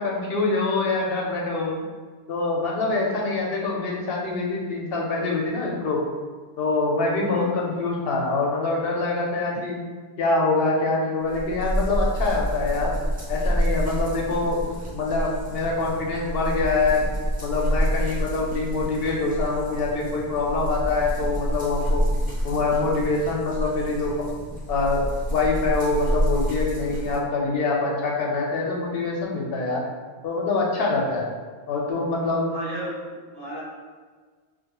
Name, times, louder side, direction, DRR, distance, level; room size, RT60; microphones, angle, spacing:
voice 1, 0.0-1.7 2.3-6.0 6.6-9.8 10.2-12.9 13.3-14.6 14.9-17.1 17.4-22.1 22.4-24.2 24.7-25.0 25.3-29.8 30.2-31.3 31.7-32.5, left 3 dB, 70° left, -2 dB, 0.7 m, -25 dB
voice 2, 7.3-7.6 32.5-32.9 33.3-33.6, equal, 70° right, -8 dB, 1.1 m, -35 dB
sound 1, 11.3-27.2, equal, 15° right, 0.4 m, -28 dB
2.3 x 2.2 x 2.9 m, 1.5 s
omnidirectional pair, 1.1 m